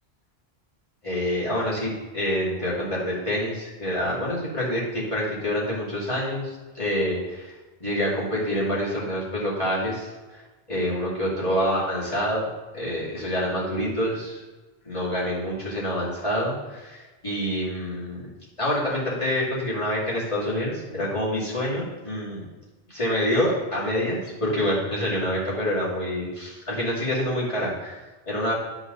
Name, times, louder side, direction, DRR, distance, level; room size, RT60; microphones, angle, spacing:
voice 1, 1.0-7.5 7.8-10.4 10.7-12.5 12.7-14.4 14.8-18.2 18.6-22.4 22.9-28.5, equal, 30° left, -7 dB, 2.7 m, -27 dB
10.0 x 4.9 x 4.0 m, 1.2 s
omnidirectional pair, 1.1 m